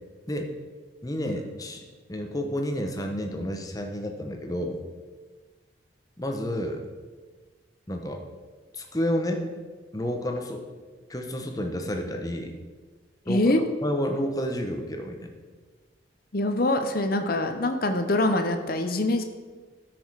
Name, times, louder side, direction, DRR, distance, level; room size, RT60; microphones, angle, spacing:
voice 1, 1.0-1.8 2.1-4.8 6.2-6.8 7.9-8.2 8.7-9.4 9.9-10.6 11.1-12.6 13.3-15.3, equal, 20° left, 4 dB, 0.9 m, -30 dB
voice 2, 13.3-13.6 16.3-19.2, left 1 dB, 50° left, 7 dB, 0.9 m, -24 dB
13.0 x 6.2 x 4.7 m, 1.4 s
head